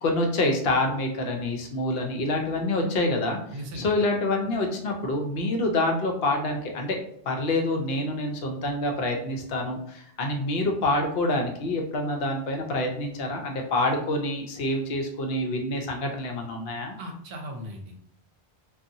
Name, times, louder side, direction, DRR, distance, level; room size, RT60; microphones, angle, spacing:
voice 1, 0.0-3.4 3.8-7.0 7.3-17.0, left 2 dB, 70° left, 2 dB, 0.8 m, -27 dB
voice 2, 3.5-3.9 17.0-18.1, equal, 70° right, 2 dB, 0.8 m, -38 dB
2.7 x 2.3 x 2.5 m, 0.66 s
omnidirectional pair, 1.1 m